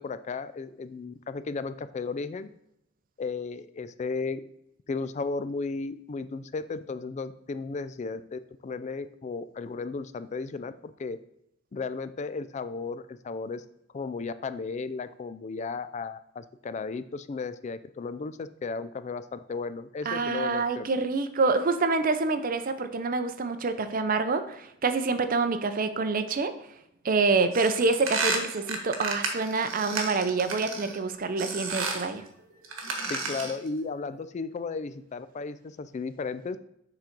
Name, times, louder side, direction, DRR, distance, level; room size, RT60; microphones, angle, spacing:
voice 1, 0.0-2.5 3.2-4.4 4.9-11.2 11.7-13.6 13.9-20.9 33.1-36.6, left 4 dB, 35° left, 13 dB, 0.3 m, -34 dB
voice 2, 20.1-26.5 27.0-32.2, right 3 dB, 45° right, 10 dB, 0.5 m, -27 dB
sound 1, 27.5-31.0 31.4-32.1 32.6-33.6, right 3 dB, 80° right, 1.2 m, -32 dB
7.0 x 3.8 x 4.4 m, 0.79 s
head